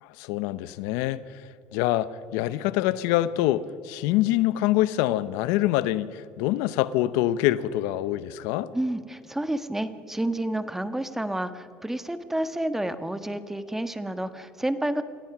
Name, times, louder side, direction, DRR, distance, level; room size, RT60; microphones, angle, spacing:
voice 1, 0.0-1.4 1.7-8.7, left 14 dB, 85° left, 0.7 m, -25 dB
voice 2, 8.7-15.0, right 1 dB, 5° right, 1.3 m, -30 dB
27.5 x 17.0 x 6.0 m
supercardioid pair, 105°, 5 cm